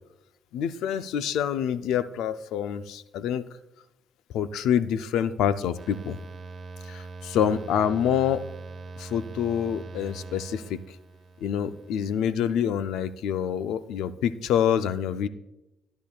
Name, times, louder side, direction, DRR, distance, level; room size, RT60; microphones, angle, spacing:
voice 1, 0.5-3.5 4.3-6.2 6.9-7.0 7.3-8.4 9.0-10.8 11.4-15.3, left 9 dB, 90° left, 13 dB, 0.5 m, -26 dB
sound 1, 5.8-12.2, right 3 dB, 50° right, 0.9 m, -42 dB
14.5 x 10.5 x 2.4 m, 0.92 s
cardioid pair, 90°, 0 cm